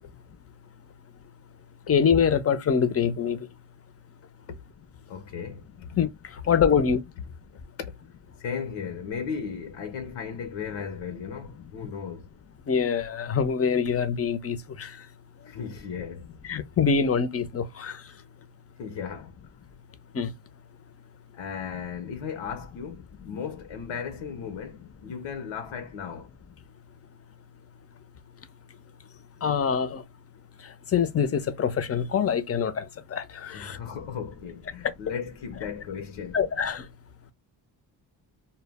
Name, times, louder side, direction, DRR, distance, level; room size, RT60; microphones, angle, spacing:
voice 1, 1.9-3.4 6.0-6.1 6.5-7.0 12.7-14.9 16.5-17.9 20.1-20.3 29.4-30.0 30.9-32.8 33.1-33.8 36.3-36.8, left 6 dB, 35° left, 0.5 m, -24 dB
voice 2, 5.1-5.9 7.8-7.9 8.4-12.3 15.4-16.3 18.8-19.3 21.3-26.3 33.5-36.4, left 7 dB, 90° left, 0.7 m, -36 dB
2.1 x 2.1 x 3.3 m
cardioid pair, 75°, 45 cm